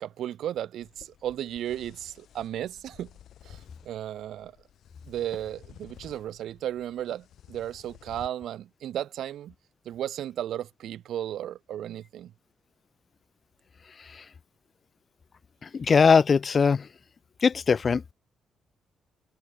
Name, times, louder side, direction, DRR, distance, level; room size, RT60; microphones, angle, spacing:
voice 1, 0.0-3.1 3.4-4.5 5.1-9.5 9.9-12.3, right 11 dB, 75° right, 0.5 m, -34 dB
sound 1, 0.8-8.3, left 10 dB, 70° left, 3.4 m, -53 dB
voice 2, 15.7-16.8 17.4-18.0, left 5 dB, 40° left, 0.4 m, -20 dB
cardioid pair, 90°, 0 cm